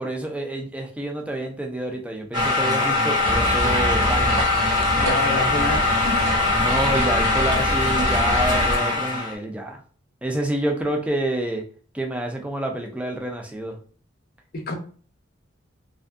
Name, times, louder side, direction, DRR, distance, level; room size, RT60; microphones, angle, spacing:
voice 1, 0.0-4.5 6.6-9.8 10.2-11.6 11.9-13.8, right 1 dB, 5° right, 3 dB, 0.3 m, -28 dB
sound 1, 2.3-9.3, left 3 dB, 20° right, 0.8 m, -21 dB
sound 2, 3.2-8.8, right 1 dB, 85° right, 0.5 m, -28 dB
voice 2, 4.9-6.7 14.5-14.7, left 2 dB, 50° left, 4 dB, 0.5 m, -29 dB
2.5 x 2.2 x 2.4 m, 0.42 s
head